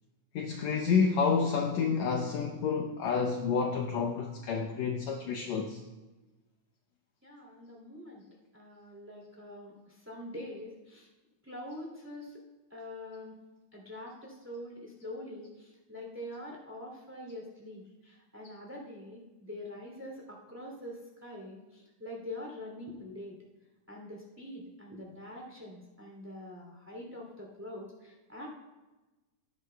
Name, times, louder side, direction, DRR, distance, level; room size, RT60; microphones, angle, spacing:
voice 1, 0.3-5.8, left 5 dB, 75° left, 2 dB, 1.7 m, -29 dB
voice 2, 7.2-8.2 8.5-11.1 11.4-12.3 12.7-13.3 13.7-23.3 23.9-28.5, left 1 dB, 5° right, -1 dB, 2.1 m, -44 dB
17.5 x 9.6 x 2.2 m, 1.1 s
omnidirectional pair, 3.7 m